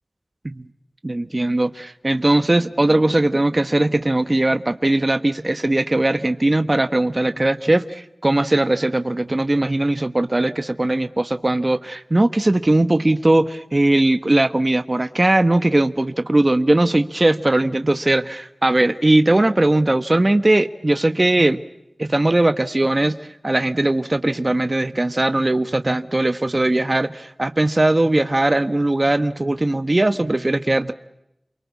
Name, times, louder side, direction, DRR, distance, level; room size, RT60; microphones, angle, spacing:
voice 1, 1.0-21.6 22.0-23.2 23.4-30.9, right 2 dB, 40° right, 11 dB, 1.2 m, -19 dB
29.5 x 23.5 x 8.4 m, 0.83 s
wide cardioid pair, 55°, 0 cm